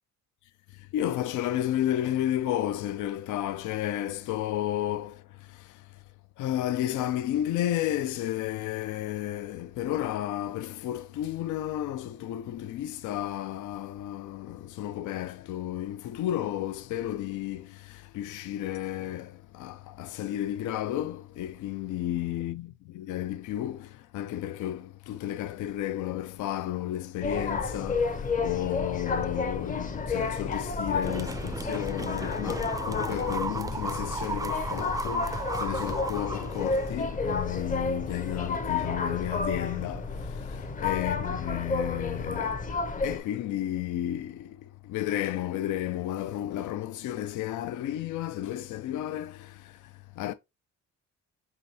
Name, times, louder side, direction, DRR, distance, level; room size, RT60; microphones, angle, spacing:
voice 1, 0.9-5.8 6.4-42.6 43.0-49.9 50.2-50.3, left 12 dB, 80° left, 0.5 m, -32 dB
sound 1, 27.2-43.2, left 4 dB, 25° left, 0.8 m, -31 dB
sound 2, 31.0-37.0, right 3 dB, 10° right, 0.4 m, -35 dB
5.0 x 2.8 x 2.7 m
cardioid pair, 90°, 30 cm